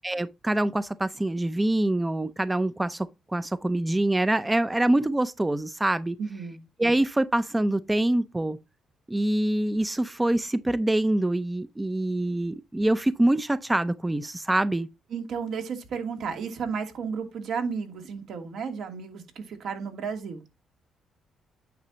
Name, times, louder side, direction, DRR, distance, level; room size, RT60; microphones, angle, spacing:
voice 1, 0.0-6.2 6.8-8.6 9.1-14.9, right 1 dB, 15° right, 0.5 m, -25 dB
voice 2, 6.2-6.6 15.1-20.4, right 6 dB, 70° right, 2.6 m, -33 dB
9.4 x 6.6 x 2.8 m
cardioid pair, 90°, 0 cm